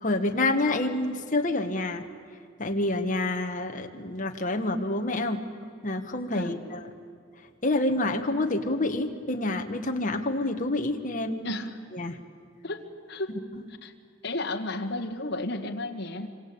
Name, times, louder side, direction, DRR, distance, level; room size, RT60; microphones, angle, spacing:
voice 1, 0.0-2.0 2.6-5.4 5.8-6.8 7.6-11.5 11.9-12.2 13.3-13.6, left 2 dB, 35° left, 5 dB, 1.7 m, -28 dB
voice 2, 11.4-11.8 12.6-13.3 13.8-13.9 14.2-16.3, left 2 dB, 50° left, 4 dB, 1.9 m, -33 dB
26.5 x 26.0 x 8.7 m, 2.3 s
head